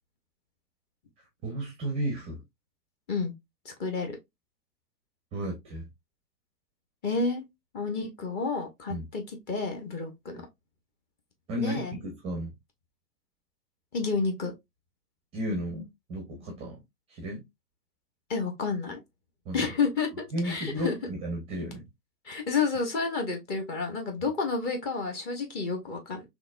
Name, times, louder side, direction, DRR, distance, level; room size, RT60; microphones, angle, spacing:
voice 1, 1.4-2.4 5.3-5.9 8.9-9.0 11.5-12.5 15.3-16.8 17.1-17.4 19.5-19.6 20.3-21.9, equal, 15° right, 0.6 m, -33 dB
voice 2, 3.6-4.2 7.0-7.5 7.7-10.4 11.6-11.9 13.9-14.5 18.3-19.0 19.5-21.0 22.2-26.2, left 4 dB, 20° left, 0.9 m, -30 dB
3.9 x 3.0 x 2.4 m
figure-of-eight pair, 110°, 48 cm